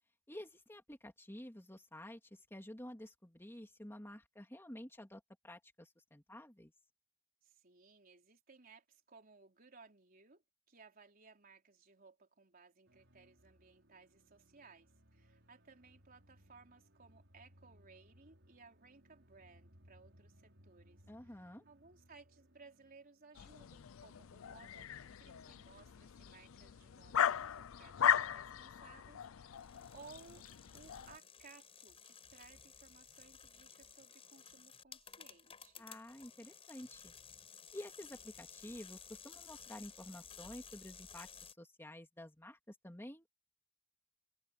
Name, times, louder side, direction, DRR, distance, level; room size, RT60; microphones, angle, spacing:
voice 1, 0.3-6.7 21.1-21.6 35.8-37.1 37.7-43.3, left 1 dB, 10° left, 2.6 m, -51 dB
voice 2, 7.4-30.5 30.7-35.9, right 4 dB, 45° right, 3.9 m, -61 dB
sound 1, 12.8-23.6, equal, 65° right, 5.9 m, -66 dB
sound 2, 23.4-31.2, left 9 dB, 80° left, 0.5 m, -38 dB
sound 3, 29.5-41.5, left 7 dB, 30° left, 4.7 m, -56 dB
open air
head